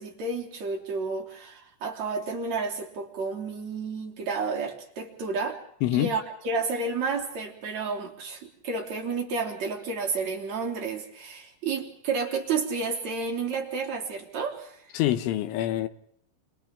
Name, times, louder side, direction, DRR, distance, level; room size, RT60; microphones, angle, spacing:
voice 1, 0.0-5.6 5.9-14.9, right 4 dB, 40° right, 4.0 m, -31 dB
voice 2, 5.8-6.1 14.9-15.9, left 14 dB, 90° left, 3.6 m, -25 dB
29.5 x 27.5 x 3.7 m
omnidirectional pair, 5.4 m